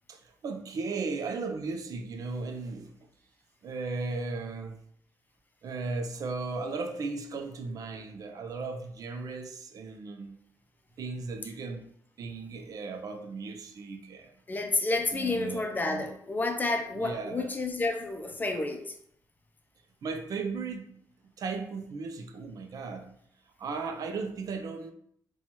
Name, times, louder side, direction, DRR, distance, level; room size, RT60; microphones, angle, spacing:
voice 1, 0.1-2.9 3.6-4.8 5.6-10.4 11.0-11.9 12.2-14.3 15.1-16.1 16.9-17.5 20.0-20.9 21.4-23.1 23.6-24.9, right 4 dB, 65° right, 5 dB, 0.5 m, -36 dB
voice 2, 14.5-18.8, left 3 dB, 25° left, 5 dB, 0.5 m, -30 dB
2.9 x 2.3 x 4.1 m, 0.66 s
cardioid pair, 95°, 7 cm